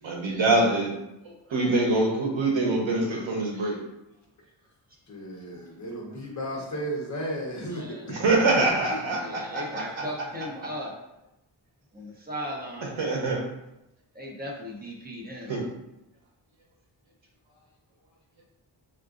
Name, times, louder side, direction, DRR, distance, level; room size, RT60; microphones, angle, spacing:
voice 1, 0.0-0.9 1.2-3.7 8.1-10.0 12.8-13.4 15.5-15.6, right 2 dB, 85° right, -1 dB, 0.8 m, -25 dB
voice 2, 5.1-8.2 8.9-9.2, right 1 dB, 40° left, -1 dB, 0.7 m, -34 dB
voice 3, 7.7-8.1 9.2-10.9 11.9-13.0 14.1-15.5, equal, 20° right, -2 dB, 0.5 m, -37 dB
3.8 x 2.4 x 2.4 m, 0.91 s
wide cardioid pair, 150°, 45 cm